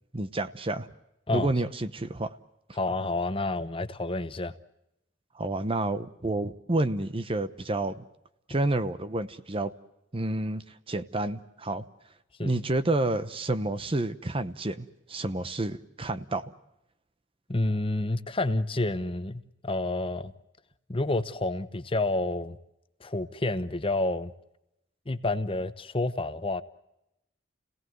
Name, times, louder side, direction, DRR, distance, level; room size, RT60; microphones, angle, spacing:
voice 1, 0.1-0.9 1.3-2.3 5.3-8.0 8.5-9.7 10.1-11.8 12.4-16.5, right 2 dB, 30° right, 12 dB, 0.9 m, -29 dB
voice 2, 2.7-4.5 12.4-12.6 17.5-20.3 20.9-22.6 23.0-24.3 25.1-26.6, left 2 dB, 30° left, 12 dB, 0.9 m, -29 dB
30.0 x 17.5 x 7.9 m, 0.87 s
head